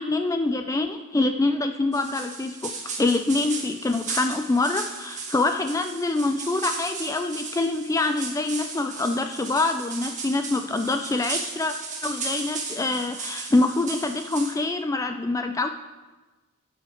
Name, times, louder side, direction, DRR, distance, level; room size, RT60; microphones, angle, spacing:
voice 1, 0.0-11.7 12.0-15.7, left 2 dB, 15° left, 6 dB, 0.3 m, -25 dB
sound 1, 1.9-14.5, right 4 dB, 35° right, 1.6 m, -35 dB
16.5 x 5.7 x 5.1 m, 1.2 s
head